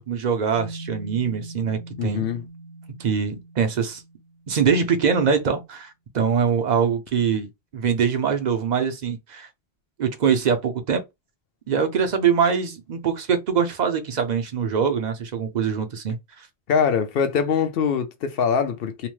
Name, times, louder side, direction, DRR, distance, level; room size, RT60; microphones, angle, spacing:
voice 1, 0.1-2.3 3.0-4.0 4.5-7.5 7.7-9.5 10.0-11.0 11.7-16.5, right 6 dB, 55° right, 0.5 m, -23 dB
sound 1, 0.5-4.8, right 2 dB, 80° right, 0.9 m, -41 dB
voice 2, 2.0-2.5 16.7-19.1, left 6 dB, 65° left, 0.7 m, -23 dB
2.8 x 2.0 x 3.0 m
omnidirectional pair, 1.1 m